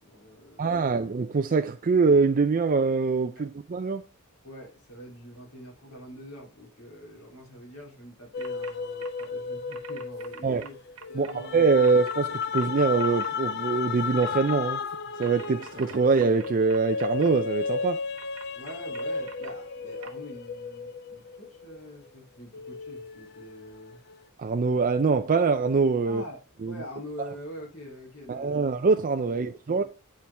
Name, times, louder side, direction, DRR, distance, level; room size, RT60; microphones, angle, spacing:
voice 1, 0.0-1.1 3.3-3.5 4.4-11.6 18.5-24.0 26.0-28.7 29.3-29.8, equal, 75° left, 3.0 m, -45 dB
voice 2, 0.6-4.0 10.4-10.6 11.2-14.8 15.2-18.0 24.4-26.2 26.6-26.7 28.3-29.8, right 4 dB, 40° right, 0.4 m, -24 dB
sound 1, 8.3-22.1 22.5-24.2, left 5 dB, 50° left, 0.5 m, -34 dB
sound 2, 8.4-8.7 9.0-9.3 9.7-11.3 11.8-12.1 12.5-13.3 14.2-14.5 15.2-17.3 18.2-19.5 20.0-20.1, right 7 dB, 65° right, 0.9 m, -45 dB
8.5 x 4.5 x 3.4 m
head